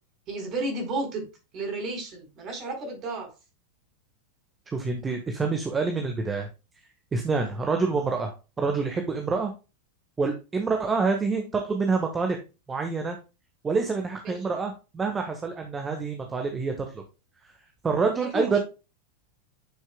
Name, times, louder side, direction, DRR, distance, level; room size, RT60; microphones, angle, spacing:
voice 1, 0.3-1.2 1.5-3.3 14.2-14.3 18.3-18.6, right 2 dB, 35° right, 4 dB, 4.4 m, -32 dB
voice 2, 4.7-6.5 7.1-9.5 10.2-12.4 12.7-13.2 13.6-17.0 17.8-18.6, right 4 dB, 15° right, 4 dB, 1.3 m, -27 dB
10.5 x 6.3 x 2.2 m, 0.29 s
figure-of-eight pair, 90°, 0 cm